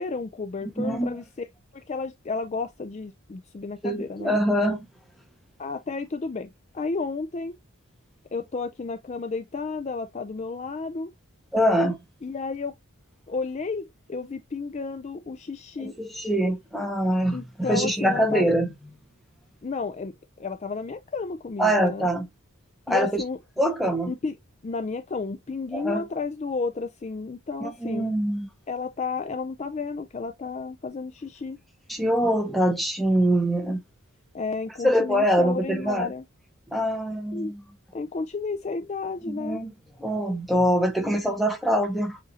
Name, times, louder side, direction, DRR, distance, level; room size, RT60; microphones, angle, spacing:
voice 1, 0.0-1.5 1.7-4.4 5.6-7.6 8.3-11.1 12.2-12.7 13.3-15.9 17.3-18.5 19.6-22.1 22.9-23.4 24.1-24.4 24.6-28.1 28.7-31.6 34.3-36.2 37.3-37.5 37.9-39.6, left 4 dB, 30° left, 0.3 m, -32 dB
voice 2, 0.8-1.2 3.8-4.9 11.5-12.0 15.8-17.4 17.7-18.7 21.6-22.3 22.9-23.2 23.6-24.1 25.7-26.1 27.6-28.5 31.9-33.8 34.8-36.1 36.7-37.6 39.3-39.7 40.0-42.2, equal, ahead, 0.9 m, -24 dB
7.3 x 2.7 x 2.7 m
head